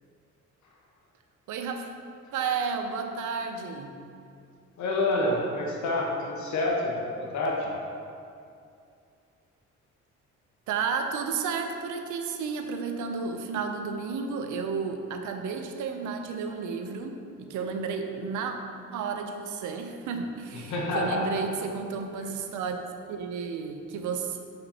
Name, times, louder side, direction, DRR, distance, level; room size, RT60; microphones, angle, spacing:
voice 1, 1.5-1.9 2.3-4.0 10.7-18.5 18.9-22.8 23.1-24.4, right 5 dB, 80° right, 5 dB, 0.6 m, -32 dB
voice 2, 4.8-7.7 20.7-21.3 22.2-22.3, left 2 dB, 70° left, -1 dB, 1.2 m, -28 dB
6.7 x 5.1 x 2.9 m, 2.5 s
cardioid pair, 90°, 30 cm